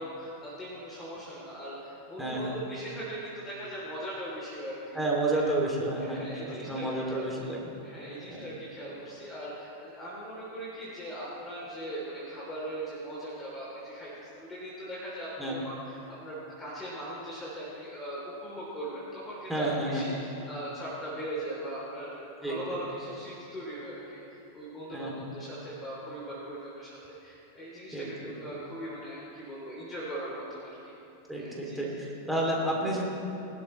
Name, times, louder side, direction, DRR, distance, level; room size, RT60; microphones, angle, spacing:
voice 1, 0.0-5.0 5.3-5.4 5.9-7.2 7.8-30.9 31.4-32.0, right 1 dB, 20° left, -7 dB, 3.4 m, -40 dB
voice 2, 2.2-2.6 4.9-7.7 8.3-8.5 15.4-15.6 19.5-20.1 22.4-22.8 24.9-25.3 27.9-28.3 31.3-33.0, right 1 dB, 5° right, -4 dB, 2.9 m, -31 dB
22.0 x 12.0 x 3.3 m, 2.9 s
figure-of-eight pair, 90°, 0 cm